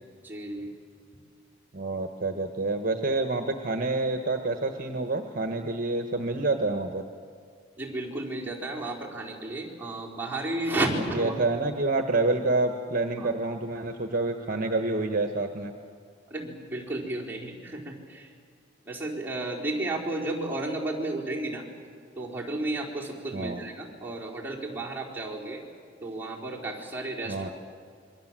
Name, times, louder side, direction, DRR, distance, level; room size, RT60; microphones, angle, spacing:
voice 1, 0.2-0.7 7.8-11.3 13.2-13.3 16.3-18.3 18.9-21.6 22.2-25.6 26.0-27.5, right 2 dB, 10° right, -4 dB, 4.2 m, -33 dB
voice 2, 1.7-7.0 11.1-15.7 23.3-23.6 27.3-27.5, right 2 dB, 50° right, 6 dB, 1.3 m, -28 dB
27.0 x 22.5 x 7.6 m, 2.1 s
head